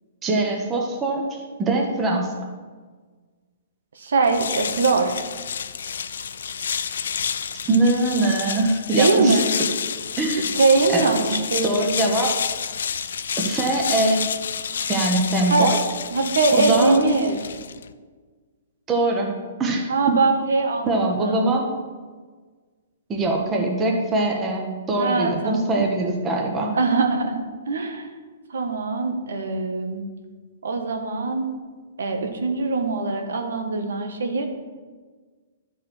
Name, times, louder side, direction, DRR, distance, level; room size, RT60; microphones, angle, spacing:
voice 1, 0.2-2.5 7.6-9.4 10.2-10.5 10.9-11.1 11.6-12.3 13.4-14.2 14.9-15.8 16.5-16.9 18.9-19.3 19.6-19.9 20.9-21.7 23.1-26.7, right 2 dB, 15° right, 0 dB, 1.2 m, -22 dB
voice 2, 3.9-5.1 8.9-9.5 10.5-11.8 15.5-15.7 16.1-17.5 19.9-21.5 25.0-25.9 26.7-28.1 28.5-30.1 30.6-31.5 32.0-34.5, right 3 dB, 85° right, 5 dB, 1.4 m, -22 dB
sound 1, 4.2-17.9, left 7 dB, 75° left, 0.4 m, -29 dB
12.0 x 4.9 x 4.5 m, 1.5 s
hypercardioid pair, 155°, 0 cm